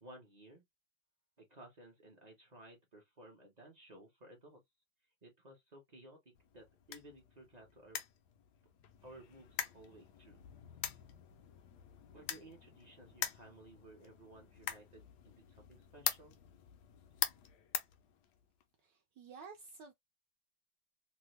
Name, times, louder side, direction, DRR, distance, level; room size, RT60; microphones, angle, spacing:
voice 1, 0.0-0.6 1.4-4.6 5.2-8.0 9.0-10.4 12.1-16.4, right 1 dB, 35° right, 0.6 m, -57 dB
sound 1, 6.3-18.6, left 10 dB, 70° left, 1.0 m, -44 dB
voice 2, 18.8-19.9, right 5 dB, 70° right, 1.2 m, -52 dB
3.3 x 2.2 x 3.1 m
omnidirectional pair, 2.1 m